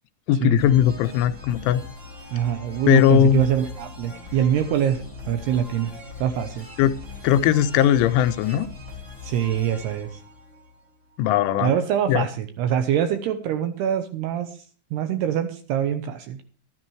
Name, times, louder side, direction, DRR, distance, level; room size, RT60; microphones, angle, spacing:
voice 1, 0.3-1.8 2.9-3.4 6.8-7.0 7.2-8.7 11.2-11.8 12.1-12.3, left 10 dB, 85° left, 3.0 m, -19 dB
sound 1, 0.6-11.2, left 4 dB, 40° right, 1.0 m, -41 dB
voice 2, 2.3-6.7 9.2-10.2 11.6-14.5 14.9-16.4, right 9 dB, 75° right, 2.7 m, -24 dB
12.5 x 12.0 x 3.2 m
omnidirectional pair, 5.5 m